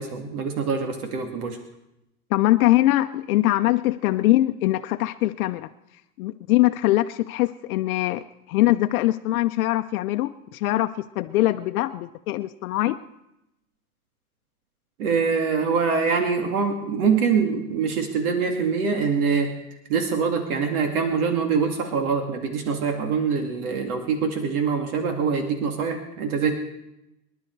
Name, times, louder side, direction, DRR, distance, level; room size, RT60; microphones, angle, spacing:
voice 1, 0.0-1.6 15.0-19.5 19.9-26.5, right 5 dB, 70° right, 5 dB, 2.3 m, -24 dB
voice 2, 2.3-5.7 6.2-13.0, left 16 dB, 65° left, 9 dB, 0.7 m, -22 dB
25.0 x 11.5 x 4.6 m, 0.90 s
supercardioid pair, 140°, 46 cm